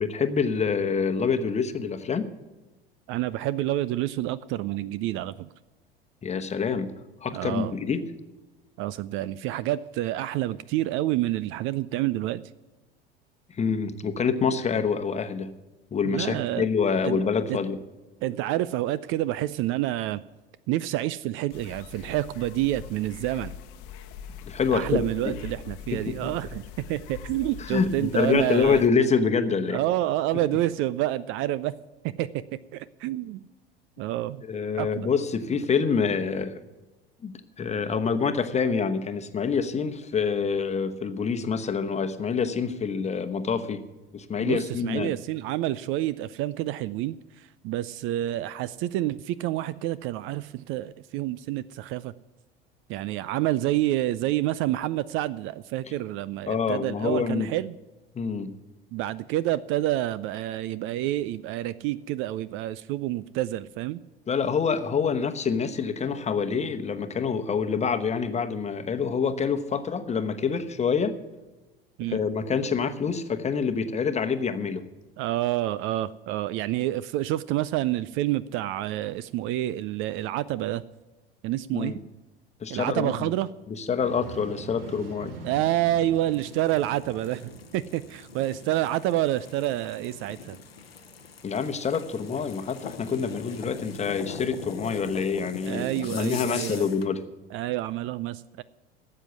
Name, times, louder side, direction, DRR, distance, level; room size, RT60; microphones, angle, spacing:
voice 1, 0.0-2.3 6.2-6.9 7.2-8.0 13.5-15.5 15.9-17.8 24.4-25.3 25.9-26.3 27.6-29.8 34.4-36.6 37.2-43.8 44.1-45.1 56.5-57.5 58.1-58.5 64.3-71.1 72.0-74.8 81.7-82.0 82.6-83.3 83.7-85.4 91.4-97.2, left 5 dB, 25° left, 8 dB, 1.1 m, -26 dB
voice 2, 3.1-5.5 7.3-7.7 8.8-12.4 16.0-16.7 17.0-17.2 17.5-17.6 18.2-20.2 20.7-23.5 24.7-26.6 26.9-28.8 29.7-31.7 32.0-32.4 32.7-33.5 34.0-34.4 34.8-35.1 44.4-52.1 52.9-57.7 58.9-64.0 72.0-72.2 75.2-80.8 81.4-82.0 82.7-83.5 85.4-90.6 95.6-96.9 97.5-98.6, right 14 dB, 45° right, 18 dB, 0.4 m, -28 dB
sound 1, 21.5-28.9, left 7 dB, 50° left, 1.0 m, -42 dB
sound 2, 84.0-95.4, right 3 dB, 75° right, 1.4 m, -47 dB
sound 3, 86.1-97.1, left 6 dB, 90° left, 1.0 m, -43 dB
13.0 x 7.7 x 8.3 m, 1.1 s
hypercardioid pair, 75°, 29 cm